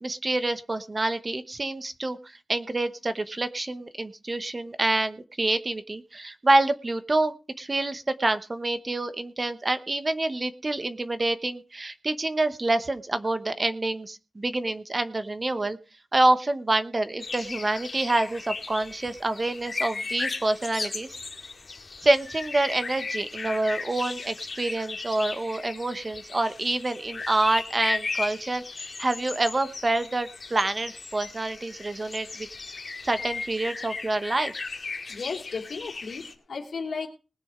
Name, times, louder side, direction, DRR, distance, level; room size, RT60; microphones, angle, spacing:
voice 1, 0.0-15.8 16.1-21.2 22.0-32.5 33.0-34.7, right 2 dB, 30° right, 11 dB, 1.0 m, -27 dB
sound 1, 17.2-36.3, left 4 dB, 50° left, 1.9 m, -36 dB
voice 2, 35.1-37.1, left 5 dB, 80° left, 1 dB, 2.6 m, -34 dB
20.0 x 7.0 x 5.0 m, 0.32 s
wide cardioid pair, 140°, 0 cm